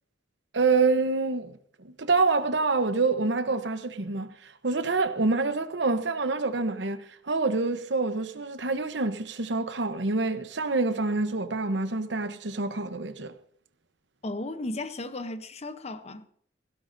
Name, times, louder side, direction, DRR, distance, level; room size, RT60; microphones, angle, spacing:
voice 1, 0.5-1.6 1.8-13.3, right 3 dB, 70° right, 1.0 m, -27 dB
voice 2, 14.2-16.3, left 2 dB, 35° left, 0.8 m, -35 dB
16.5 x 16.0 x 2.7 m
head